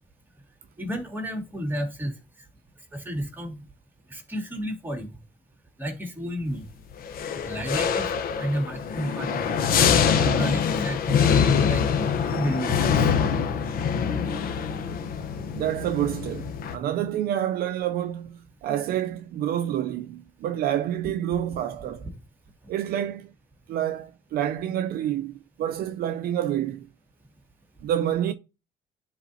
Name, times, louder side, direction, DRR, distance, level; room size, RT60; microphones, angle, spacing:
voice 1, 0.8-2.1 2.9-3.6 4.1-5.1 5.8-6.6 7.5-8.1 8.4-9.5 10.1-11.2 11.7-11.8 12.3-12.9 22.1-22.2, equal, 10° right, 2.1 m, -31 dB
sound 1, 7.0-16.8, left 7 dB, 60° left, 0.9 m, -24 dB
voice 2, 15.4-22.1 22.7-23.3 23.7-25.3 25.6-26.9 27.8-28.3, right 11 dB, 65° right, 0.5 m, -28 dB
10.0 x 4.0 x 2.7 m
cardioid pair, 110°, 17 cm